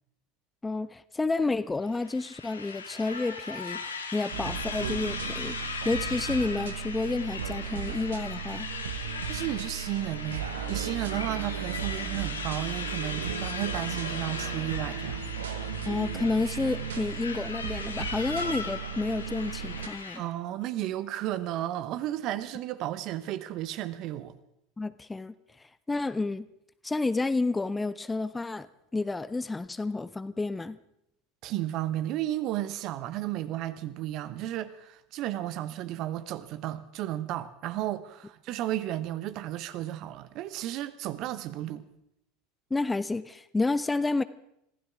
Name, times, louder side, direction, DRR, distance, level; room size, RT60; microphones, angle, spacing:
voice 1, 0.6-5.6 5.8-8.7 15.9-20.2 24.8-25.3 25.9-26.5 26.8-28.7 28.9-30.8 42.7-44.2, left 3 dB, 10° left, 0.6 m, -30 dB
sound 1, 1.9-20.2, left 4 dB, 80° left, 1.7 m, -38 dB
sound 2, 4.3-19.9, right 9 dB, 70° right, 1.3 m, -36 dB
Trumpet, 9.1-15.6, left 9 dB, 60° left, 2.1 m, -52 dB
voice 2, 9.3-15.2 20.1-24.3 31.4-41.9, right 13 dB, 45° right, 1.0 m, -33 dB
25.5 x 15.5 x 3.6 m
figure-of-eight pair, 75°, 0 cm